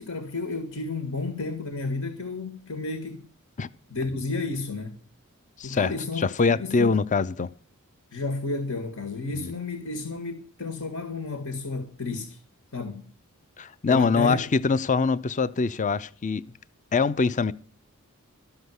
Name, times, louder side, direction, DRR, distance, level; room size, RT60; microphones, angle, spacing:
voice 1, 0.0-3.2 3.9-5.0 5.6-6.9 8.1-12.4 12.7-13.0 13.9-14.5, left 3 dB, 80° left, 1.9 m, -32 dB
voice 2, 5.6-7.5 9.3-9.5 13.6-16.4 16.9-17.5, left 4 dB, 35° left, 0.5 m, -24 dB
13.0 x 6.8 x 9.5 m
head